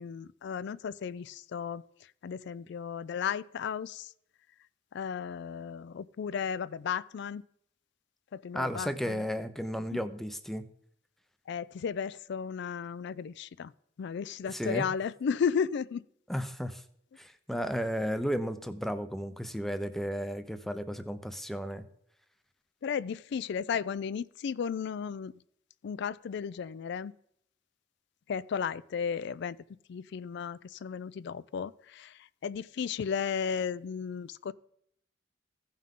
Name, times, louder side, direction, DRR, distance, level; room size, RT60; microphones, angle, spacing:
voice 1, 0.0-1.8 2.2-4.1 4.9-7.4 8.3-9.2 11.5-13.7 14.0-16.0 22.8-25.3 25.8-27.1 28.3-29.6 29.9-34.5, left 7 dB, 60° left, 19 dB, 0.3 m, -34 dB
voice 2, 8.5-10.7 14.5-14.9 16.3-16.8 17.2-21.8, equal, ahead, 10 dB, 0.5 m, -33 dB
15.5 x 5.6 x 3.7 m, 0.71 s
head